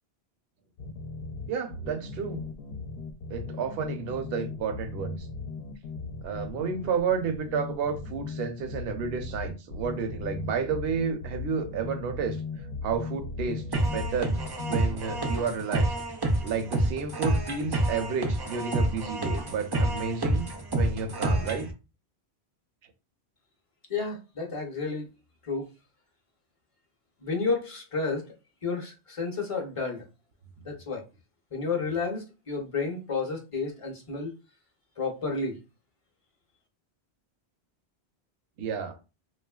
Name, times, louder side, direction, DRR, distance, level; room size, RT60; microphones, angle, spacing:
sound 1, 0.8-15.2, left 4 dB, 70° left, 0.8 m, -38 dB
voice 1, 1.5-2.4 3.3-5.3 6.2-12.4 12.8-14.4 14.6-15.9 16.4-21.7 38.6-39.0, right 6 dB, 70° right, 0.8 m, -31 dB
sound 2, 13.7-21.7, right 1 dB, 40° right, 0.3 m, -28 dB
voice 2, 23.9-25.1 25.4-25.7 27.2-28.3 28.6-30.0 30.6-31.0 31.5-34.3 35.0-35.6, left 4 dB, 35° left, 0.6 m, -31 dB
3.0 x 2.4 x 2.2 m
omnidirectional pair, 1.1 m